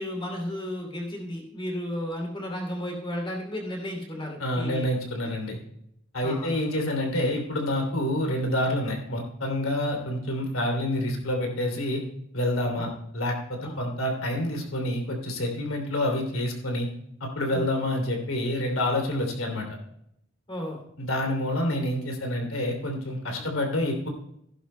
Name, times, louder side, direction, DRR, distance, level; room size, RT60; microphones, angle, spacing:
voice 1, 0.0-4.9 5.2-5.3 6.2-6.5 12.8-12.9 13.6-13.8 17.5-17.7 20.5-20.8 23.4-23.5, left 1 dB, 25° left, 2 dB, 2.8 m, -33 dB
voice 2, 4.4-5.6 6.1-12.0 12.3-12.9 13.1-16.9 17.2-19.7 21.0-24.1, left 1 dB, 70° left, 2 dB, 2.9 m, -28 dB
15.5 x 11.0 x 2.2 m, 0.74 s
head